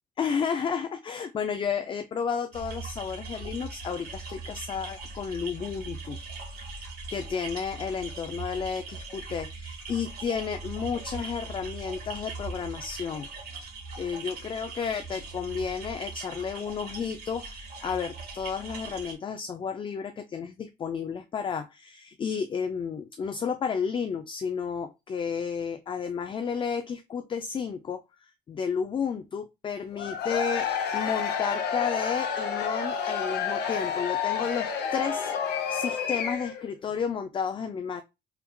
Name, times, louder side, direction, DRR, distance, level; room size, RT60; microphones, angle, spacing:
voice 1, 0.2-6.2 6.5-13.3 14.0-30.7 30.9-35.3 35.7-38.0, left 6 dB, 30° left, 8 dB, 0.4 m, -32 dB
sound 1, 2.5-19.1, right 3 dB, 75° right, 1.7 m, -40 dB
Cheering / Crowd, 29.9-36.7, left 7 dB, 85° left, 0.7 m, -30 dB
4.5 x 3.6 x 2.2 m, 0.24 s
cardioid pair, 145°, 17 cm